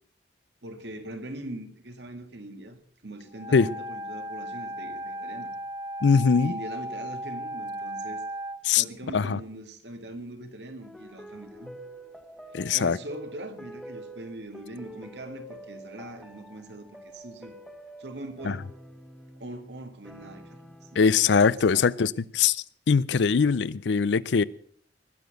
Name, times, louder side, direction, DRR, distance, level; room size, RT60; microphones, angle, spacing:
voice 1, 0.6-5.5 6.4-8.2 8.7-11.8 12.7-17.5 18.0-18.7 19.4-21.2 21.5-21.9, right 1 dB, 75° right, 1.8 m, -41 dB
Wind instrument woodwind instrument, 3.3-8.6, right 1 dB, 30° right, 1.0 m, -36 dB
voice 2, 6.0-6.5 8.6-8.8 9.1-9.4 12.5-13.0 18.4-18.6 21.0-24.4, left 5 dB, 85° left, 0.5 m, -22 dB
sound 1, 10.8-21.7, right 1 dB, ahead, 1.2 m, -47 dB
20.5 x 7.0 x 6.5 m
head